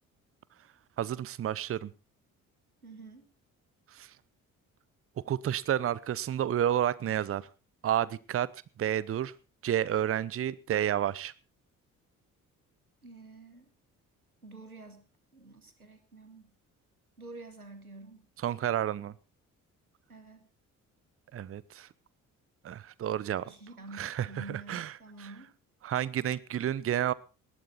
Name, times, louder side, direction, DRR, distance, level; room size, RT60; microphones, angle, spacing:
voice 1, 1.0-1.9 3.9-4.1 5.3-7.5 7.8-8.5 8.8-9.3 9.6-11.3 18.4-19.1 21.3-21.9 22.6-23.5 24.0-24.9 25.8-27.1, right 10 dB, 30° right, 21 dB, 0.8 m, -30 dB
voice 2, 2.8-3.3 13.0-13.7 14.4-15.0 15.3-16.5 17.2-18.2 20.1-20.5 23.4-25.5, right 3 dB, 90° right, 10 dB, 1.3 m, -48 dB
19.0 x 13.0 x 4.0 m, 0.32 s
figure-of-eight pair, 45°, 43 cm